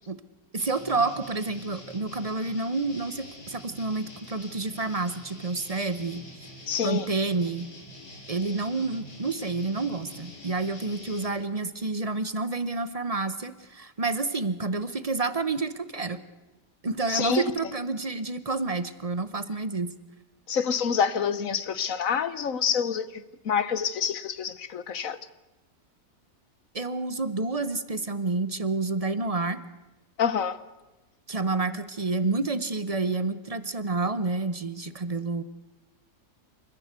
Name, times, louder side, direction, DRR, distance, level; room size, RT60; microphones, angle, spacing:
voice 1, 0.5-6.5 6.8-7.7 8.3-16.2 16.8-19.9 26.7-29.6 31.3-35.4, right 3 dB, 30° right, 0.7 m, -29 dB
sound 1, 0.6-11.3, left 1 dB, 80° left, 4.6 m, -46 dB
voice 2, 6.7-7.1 17.1-17.4 20.5-25.2 30.2-30.6, left 7 dB, 55° left, 1.2 m, -27 dB
28.5 x 15.0 x 8.1 m
omnidirectional pair, 1.8 m